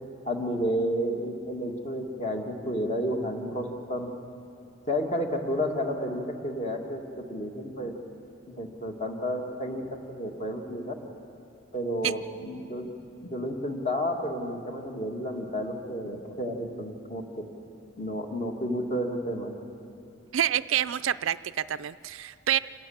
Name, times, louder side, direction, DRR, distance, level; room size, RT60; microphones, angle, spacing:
voice 1, 0.2-4.1 4.9-7.9 8.5-10.9 11.7-12.9 13.2-17.2 18.0-19.5, equal, 35° left, 2 dB, 2.0 m, -31 dB
voice 2, 20.3-22.6, right 10 dB, 85° right, 15 dB, 0.4 m, -27 dB
27.0 x 18.0 x 7.3 m, 2.7 s
head